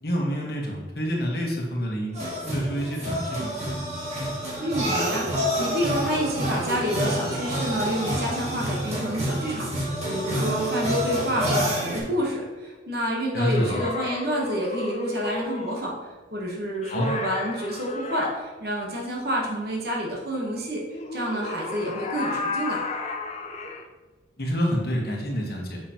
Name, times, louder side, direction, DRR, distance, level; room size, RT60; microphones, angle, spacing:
voice 1, 0.0-3.8 13.3-13.8 16.9-17.1 24.4-25.8, equal, 55° left, -1 dB, 1.3 m, -28 dB
sound 1, 2.1-12.0, equal, 35° right, 1.7 m, -28 dB
voice 2, 4.6-16.0 16.3-22.8, equal, 55° right, -2 dB, 1.2 m, -29 dB
sound 2, 13.4-15.8 16.8-18.4 20.9-23.8, left 3 dB, 35° left, 0.5 m, -33 dB
7.3 x 5.9 x 3.0 m, 1.3 s
head